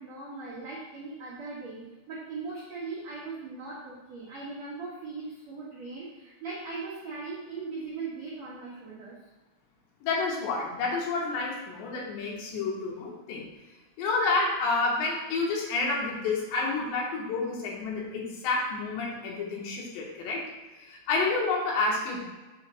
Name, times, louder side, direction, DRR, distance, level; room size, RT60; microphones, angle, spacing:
voice 1, 0.0-9.2, right 4 dB, 80° right, -7 dB, 1.5 m, -39 dB
voice 2, 10.0-13.4 14.0-20.4 20.8-22.2, left 3 dB, 75° left, -2 dB, 3.3 m, -29 dB
7.2 x 3.1 x 5.5 m, 1.1 s
omnidirectional pair, 5.2 m